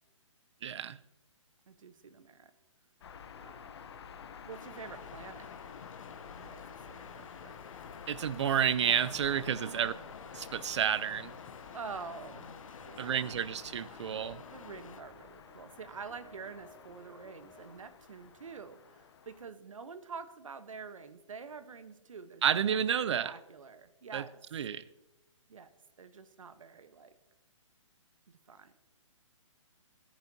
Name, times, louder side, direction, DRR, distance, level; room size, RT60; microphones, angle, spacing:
voice 1, 0.6-1.0 8.1-9.9 10.3-11.3 13.0-14.4 22.4-23.3 24.1-24.2 24.5-24.8, right 8 dB, 60° right, 0.6 m, -30 dB
voice 2, 1.7-2.5 3.4-3.7 4.5-5.5 6.4-6.6 6.9-7.6 9.6-10.1 11.7-12.6 12.8-13.5 14.5-22.9 23.2-24.4 25.5-25.7 26.0-27.1 28.3-28.7, right 5 dB, 80° right, 1.1 m, -47 dB
sound 1, 3.0-19.5, left 7 dB, 55° left, 0.9 m, -50 dB
sound 2, 4.5-15.0, left 6 dB, 85° left, 0.7 m, -51 dB
sound 3, 11.0-17.8, equal, 5° right, 2.6 m, -60 dB
17.0 x 10.5 x 2.8 m
hypercardioid pair, 150°, 17 cm